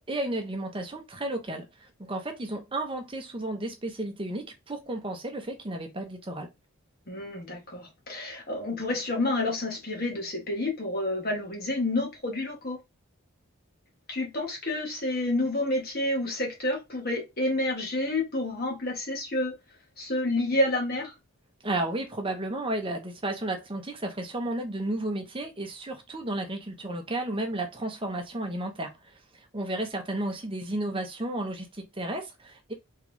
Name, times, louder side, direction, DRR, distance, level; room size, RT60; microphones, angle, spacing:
voice 1, 0.1-6.5 21.6-32.7, right 1 dB, 25° right, 0.8 m, -33 dB
voice 2, 7.1-12.8 14.1-19.6 20.0-21.1, left 2 dB, 45° left, 1.4 m, -29 dB
3.7 x 3.3 x 3.3 m
head